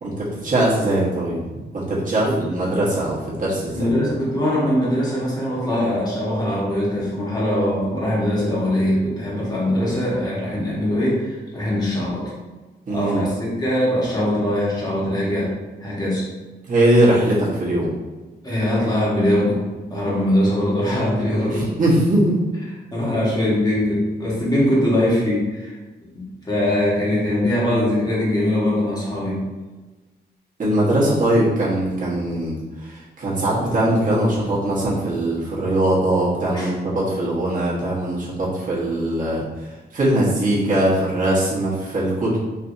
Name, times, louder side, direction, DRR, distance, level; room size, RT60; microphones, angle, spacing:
voice 1, 0.0-3.9 12.9-13.2 16.7-17.9 21.5-22.4 30.6-39.4 39.9-42.4, right 1 dB, 50° right, -7 dB, 1.1 m, -21 dB
voice 2, 3.7-12.2 12.9-15.5 15.8-16.2 18.4-19.6 19.9-21.7 22.9-25.8 26.1-29.4 36.5-36.7, left 1 dB, 20° left, -7 dB, 1.2 m, -21 dB
3.3 x 2.7 x 2.6 m, 1.2 s
wide cardioid pair, 110°, 18 cm